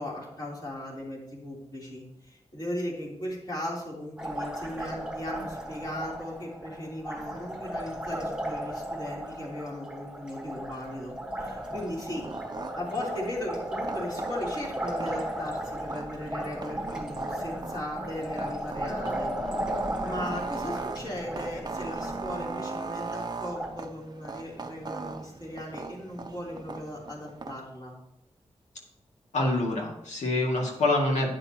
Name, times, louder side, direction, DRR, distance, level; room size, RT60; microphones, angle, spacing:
voice 1, 0.0-12.3 12.8-19.3 20.0-27.9, left 1 dB, 35° left, -4 dB, 3.3 m, -37 dB
Liquid, 4.2-23.7, right 1 dB, 5° right, 1.3 m, -36 dB
sound 1, 11.5-27.6, right 4 dB, 35° right, 0.7 m, -40 dB
voice 2, 29.3-31.3, left 2 dB, 85° left, -1 dB, 2.2 m, -26 dB
11.5 x 9.6 x 2.9 m, 0.83 s
wide cardioid pair, 125°, 12 cm